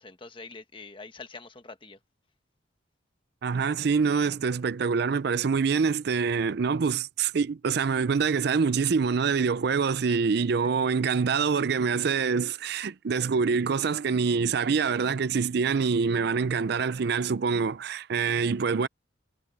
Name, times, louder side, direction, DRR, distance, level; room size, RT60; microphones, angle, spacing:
voice 1, 0.0-2.0 10.1-10.2, left 3 dB, 30° left, 1.4 m, -45 dB
voice 2, 3.4-18.9, right 5 dB, 60° right, 0.5 m, -25 dB
head